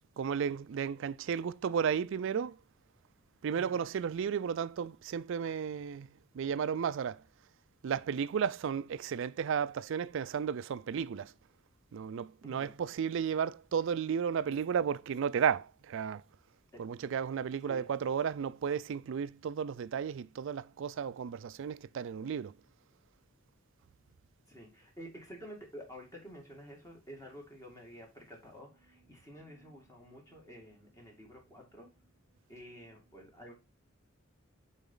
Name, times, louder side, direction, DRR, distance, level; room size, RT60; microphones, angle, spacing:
voice 1, 0.2-2.6 3.4-7.2 7.8-11.3 11.9-16.2 16.8-22.5, right 7 dB, 65° right, 0.4 m, -33 dB
voice 2, 3.5-3.9 12.4-12.8 16.7-16.8 17.6-17.9 24.5-31.9 32.5-33.5, equal, 15° left, 2.3 m, -50 dB
7.0 x 4.2 x 3.8 m
head